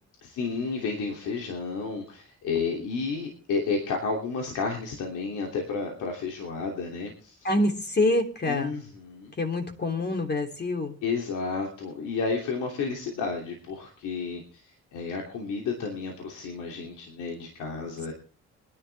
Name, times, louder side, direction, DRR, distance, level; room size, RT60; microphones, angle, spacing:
voice 1, 0.2-7.5 8.4-9.3 11.0-18.1, left 4 dB, 85° left, 1 dB, 3.0 m, -31 dB
voice 2, 7.4-8.7 9.4-10.9, left 2 dB, 35° left, 4 dB, 3.2 m, -26 dB
21.5 x 11.0 x 3.5 m, 0.40 s
cardioid pair, 90°, 30 cm